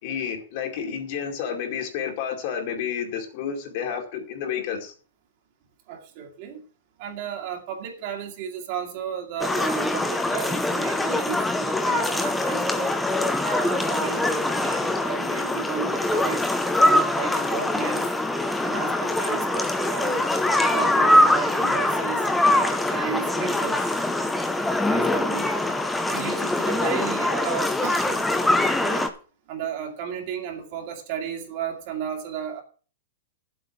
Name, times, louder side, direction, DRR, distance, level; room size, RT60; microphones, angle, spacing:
voice 1, 0.0-4.9, left 7 dB, 45° left, 2.3 m, -30 dB
voice 2, 5.9-6.6 7.0-13.0 13.4-16.6 16.8-18.1 18.6-20.3 20.7-24.0 24.9-25.5 26.1-28.2 28.8-29.1 29.5-32.6, right 8 dB, 40° right, 2.1 m, -34 dB
sound 1, 9.4-29.1, left 1 dB, 5° left, 0.7 m, -23 dB
9.7 x 7.9 x 6.0 m
supercardioid pair, 170°, 0 cm